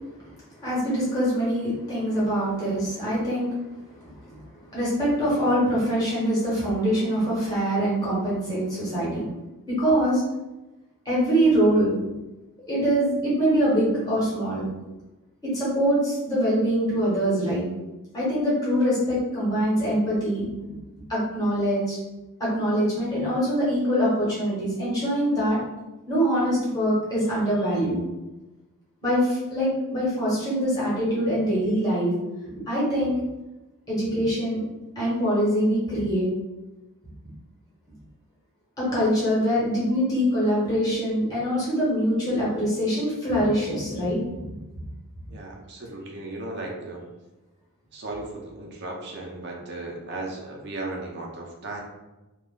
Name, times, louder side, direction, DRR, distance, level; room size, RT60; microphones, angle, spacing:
voice 1, 0.6-3.5 3.9-4.4 4.7-9.3 9.7-10.2 11.0-12.0 12.7-14.6 15.4-17.6 18.1-20.4 21.1-22.0 22.4-25.6 26.1-28.0 29.0-32.1 32.7-33.2 33.9-34.6 34.9-36.3 38.8-44.4, equal, 15° left, -8 dB, 1.4 m, -24 dB
voice 2, 45.3-47.0 47.9-51.8, right 2 dB, 50° right, -1 dB, 0.8 m, -36 dB
3.0 x 2.5 x 3.7 m, 1.0 s
head